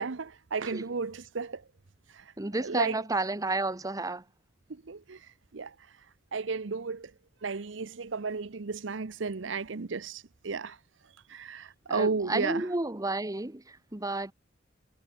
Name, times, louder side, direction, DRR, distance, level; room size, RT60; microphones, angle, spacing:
voice 1, 0.0-1.7 2.1-2.3 2.6-3.0 4.7-7.1 7.4-12.7, right 4 dB, 75° right, 0.8 m, -34 dB
voice 2, 2.4-4.2 11.9-14.3, right 2 dB, 20° right, 1.1 m, -31 dB
head